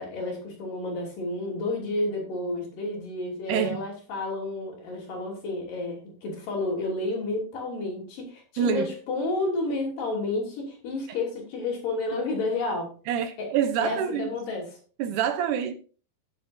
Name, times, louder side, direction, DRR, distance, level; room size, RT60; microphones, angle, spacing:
voice 1, 0.0-12.9 13.4-13.5 13.8-14.8, left 2 dB, 75° left, 4.8 m, -31 dB
voice 2, 3.5-3.8 8.6-8.9 13.1-14.3 15.0-15.7, right 8 dB, 75° right, 2.1 m, -26 dB
17.0 x 7.5 x 2.6 m
omnidirectional pair, 4.0 m